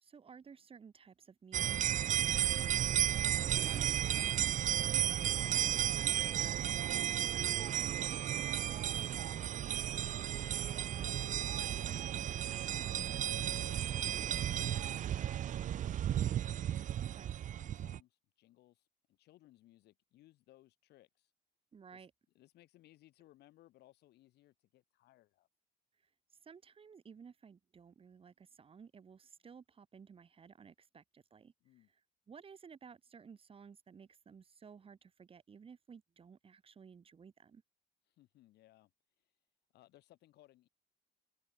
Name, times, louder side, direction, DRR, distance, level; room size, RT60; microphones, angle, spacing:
voice 1, 0.0-6.6 17.0-17.3 21.7-22.1 26.4-31.5 32.3-37.6, right 6 dB, 35° right, 1.9 m, -56 dB
sound 1, 1.5-18.0, right 11 dB, 50° right, 0.7 m, -34 dB
voice 2, 8.1-16.3 17.5-21.3 21.9-22.0 22.4-25.5 31.6-31.9 38.1-38.9 39.7-40.7, left 15 dB, 75° left, 5.2 m, -65 dB
cardioid pair, 110°, 17 cm